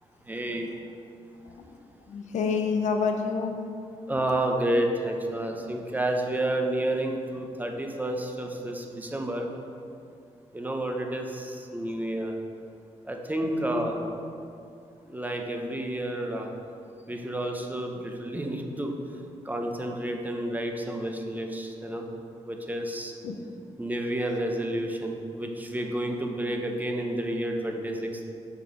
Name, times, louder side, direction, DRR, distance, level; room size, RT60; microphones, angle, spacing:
voice 1, 0.3-0.7 4.1-9.5 10.5-12.4 13.0-14.0 15.0-16.5 17.1-19.0 19.4-22.1 22.4-23.1 23.8-28.2, right 1 dB, 15° right, 2 dB, 0.7 m, -30 dB
voice 2, 1.4-1.8 2.1-3.6 13.4-14.1 23.2-23.4, left 5 dB, 85° left, 4 dB, 0.7 m, -29 dB
6.7 x 4.4 x 5.0 m, 2.5 s
cardioid pair, 115°, 12 cm